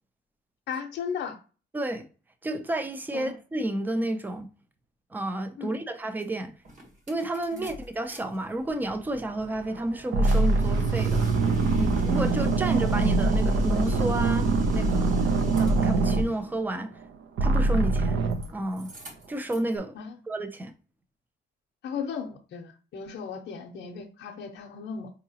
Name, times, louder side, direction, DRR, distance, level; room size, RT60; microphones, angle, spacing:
voice 1, 0.7-1.4 3.1-3.4 5.6-5.8 7.5-7.7 19.9-20.2 21.8-25.1, left 6 dB, 60° left, 0.6 m, -36 dB
voice 2, 1.7-2.1 2.4-4.5 5.1-6.5 7.1-11.2 11.8-15.3 15.6-16.9 17.4-18.2 18.5-18.9 19.3-20.0 20.3-20.7, right 1 dB, 10° right, 0.4 m, -31 dB
sound 1, 6.2-6.3 6.7-8.2 8.5-16.3 17.8-18.5 18.7-19.7, left 3 dB, 40° right, 1.1 m, -35 dB
sound 2, 9.5-9.7 10.1-17.0 17.4-18.5, right 3 dB, 75° right, 0.5 m, -23 dB
4.6 x 2.8 x 2.7 m
cardioid pair, 155°, 20 cm